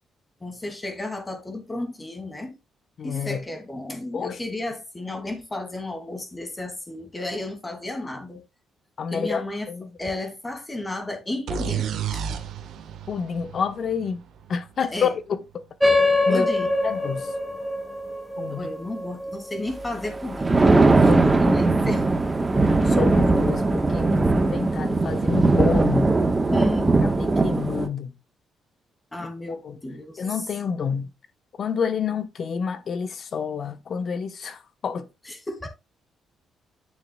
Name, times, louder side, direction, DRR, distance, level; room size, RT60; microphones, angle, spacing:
voice 1, 0.4-2.6 3.0-8.4 9.1-9.7 10.0-12.2 14.8-15.1 16.3-16.7 18.4-20.6 20.9-22.1 26.5-26.9 29.1-30.2 35.2-35.7, left 2 dB, 20° left, 2.5 m, -33 dB
voice 2, 3.0-3.4 4.1-4.4 9.0-9.9 13.1-14.2 14.5-15.6 16.3-16.5 16.8-17.3 18.4-18.7 21.1-21.2 22.6-26.1 27.0-28.1 29.5-29.8 30.2-31.1 31.6-35.1, left 6 dB, 55° left, 1.0 m, -29 dB
sound 1, 11.5-15.2, right 8 dB, 75° right, 1.3 m, -32 dB
sound 2, 15.8-20.8, left 2 dB, ahead, 2.0 m, -24 dB
Thunder, 20.1-27.9, right 3 dB, 20° right, 1.2 m, -19 dB
9.8 x 6.8 x 2.3 m
cardioid pair, 90°, 0 cm